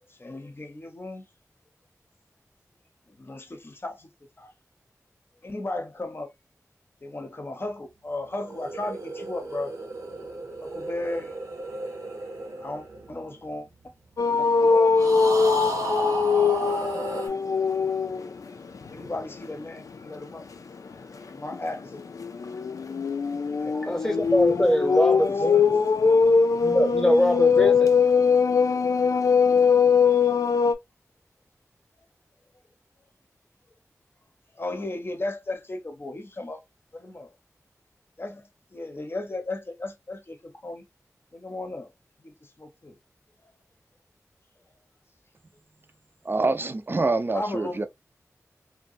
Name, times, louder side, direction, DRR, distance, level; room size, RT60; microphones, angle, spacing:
voice 1, 0.1-1.3 3.1-4.1 4.4-4.5 5.4-6.3 7.0-9.8 10.6-11.4 12.5-13.9 14.4-15.1 17.3-17.4 18.8-20.5 21.3-22.0 23.6-23.7 24.5-24.7 25.2-25.9 34.6-36.6 36.9-37.3 38.2-40.9 41.3-41.9 42.2-43.0 43.4-43.5 47.3-47.9, left 2 dB, 40° left, 0.7 m, -35 dB
sound 1, 8.3-13.9 14.9-17.3, right 3 dB, 80° right, 0.9 m, -34 dB
sound 2, 14.2-18.3 18.7-19.1 21.5-30.7, left 5 dB, 70° left, 0.3 m, -21 dB
voice 2, 23.7-25.8 26.6-27.9, equal, 10° left, 0.8 m, -23 dB
voice 3, 46.2-47.9, right 3 dB, 40° right, 0.4 m, -26 dB
2.5 x 2.1 x 2.5 m
cardioid pair, 40°, 6 cm